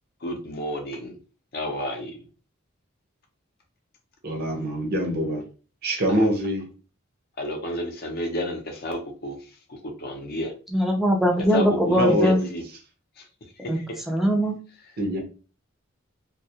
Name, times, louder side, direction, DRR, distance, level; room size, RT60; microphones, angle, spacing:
voice 1, 0.2-1.2 1.5-2.2 6.1-6.2 7.4-9.4 9.7-10.5 11.5-12.6 13.2-13.3 13.6-13.8, left 1 dB, 50° left, 3 dB, 0.6 m, -31 dB
voice 2, 4.2-5.4 5.8-6.7 12.0-12.5 15.0-15.2, equal, 50° right, 3 dB, 0.6 m, -24 dB
voice 3, 10.7-12.4 13.7-13.8 14.1-14.6, equal, ahead, 1 dB, 0.4 m, -21 dB
2.3 x 2.0 x 2.7 m, 0.36 s
head